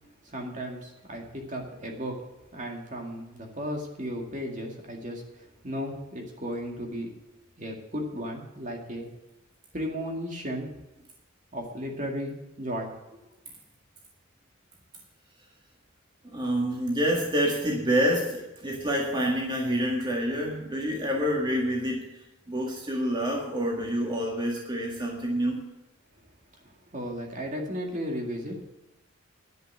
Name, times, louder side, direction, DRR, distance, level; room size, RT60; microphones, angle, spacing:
voice 1, 0.2-2.2 2.5-7.1 7.6-9.1 9.7-10.7 11.5-12.9 26.6-28.7, equal, 35° right, 1 dB, 2.2 m, -35 dB
voice 2, 16.3-22.2 22.5-25.6, equal, 20° right, -2 dB, 1.8 m, -27 dB
11.0 x 7.2 x 7.9 m, 0.96 s
head